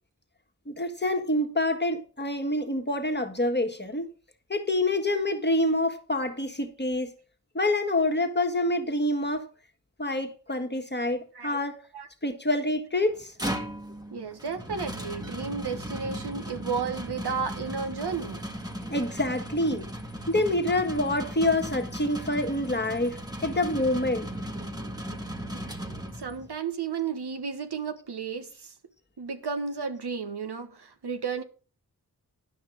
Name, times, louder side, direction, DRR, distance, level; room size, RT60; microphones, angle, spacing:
voice 1, 0.7-4.1 4.5-7.1 7.5-9.5 10.0-11.8 12.2-13.3 18.9-19.9 20.3-24.3, left 1 dB, 25° left, 1.6 m, -27 dB
sound 1, 13.1-26.5, equal, 10° right, 1.5 m, -37 dB
voice 2, 14.1-18.4 26.2-28.7 29.2-31.4, right 5 dB, 80° right, 1.3 m, -33 dB
11.0 x 5.7 x 6.1 m
wide cardioid pair, 60°, 39 cm